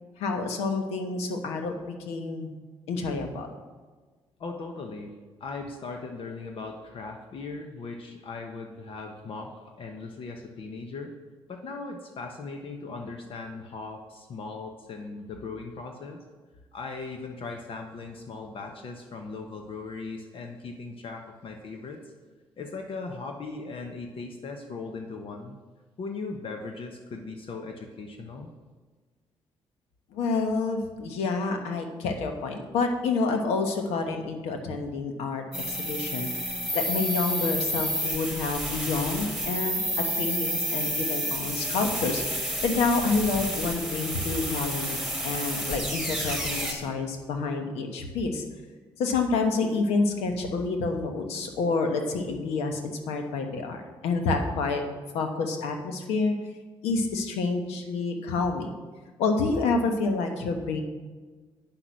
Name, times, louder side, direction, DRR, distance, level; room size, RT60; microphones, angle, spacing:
voice 1, 0.2-2.5 2.9-3.5 30.1-39.8 40.2-48.4 49.0-54.8 55.1-56.4 56.8-58.7 59.2-60.8, left 4 dB, 90° left, 5 dB, 1.1 m, -28 dB
voice 2, 4.4-5.1 5.4-11.1 11.5-16.2 16.7-22.0 22.6-25.6 26.0-28.5, left 3 dB, 60° left, 3 dB, 1.0 m, -38 dB
sound 1, 35.5-46.7, equal, ahead, 3.4 m, -30 dB
8.7 x 5.9 x 6.3 m, 1.4 s
supercardioid pair, 70°, 10 cm